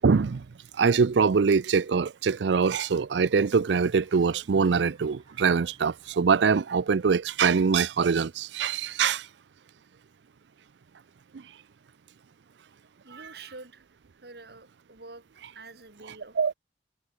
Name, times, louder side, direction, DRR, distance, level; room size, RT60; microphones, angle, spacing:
voice 1, 0.0-0.5 0.8-9.3 16.4-16.5, right 5 dB, 80° right, 0.5 m, -23 dB
sound 1, 4.0-9.3, right 2 dB, 20° right, 6.8 m, -65 dB
voice 2, 13.0-13.9 14.2-15.2 15.5-16.4, right 3 dB, 60° right, 3.1 m, -46 dB
head